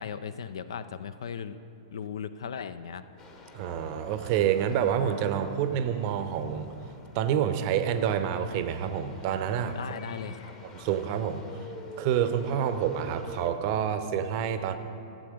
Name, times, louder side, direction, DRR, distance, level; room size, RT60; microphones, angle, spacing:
voice 1, 0.0-1.6 1.9-3.0 9.7-10.5, left 7 dB, 60° left, 13 dB, 0.4 m, -37 dB
sound 1, 3.2-13.5, left 2 dB, 25° left, 1.1 m, -46 dB
voice 2, 3.5-6.8 7.1-9.8 10.7-11.4 12.0-14.8, right 9 dB, 40° right, 10 dB, 0.7 m, -28 dB
14.0 x 7.5 x 5.0 m, 2.7 s
figure-of-eight pair, 105°, 3 cm